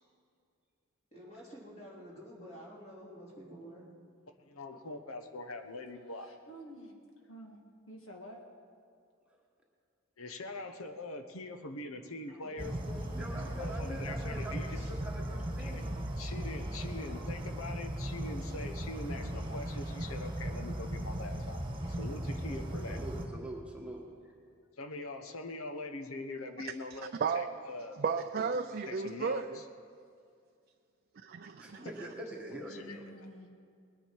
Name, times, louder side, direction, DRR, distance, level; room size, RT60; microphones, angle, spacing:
voice 1, 1.1-3.9 12.3-14.9 31.9-32.5, equal, 35° left, -6 dB, 3.7 m, -50 dB
voice 2, 4.4-6.3 10.2-12.7 13.6-14.9 15.6-21.6 21.9-23.0 24.8-28.0 28.8-29.7 31.7-31.9 32.8-33.1, left 2 dB, 85° left, 7 dB, 1.1 m, -43 dB
voice 3, 6.1-7.6 7.9-8.4 32.7-33.5, equal, 65° left, 1 dB, 1.9 m, -50 dB
sound 1, 12.6-23.3, right 1 dB, 25° right, 1.4 m, -37 dB
voice 4, 13.2-15.9 22.5-24.0 31.6-33.0, right 1 dB, 5° right, -2 dB, 1.4 m, -44 dB
voice 5, 28.0-29.6 31.2-31.9, right 5 dB, 45° right, 6 dB, 0.4 m, -33 dB
20.0 x 10.5 x 4.7 m, 2.3 s
head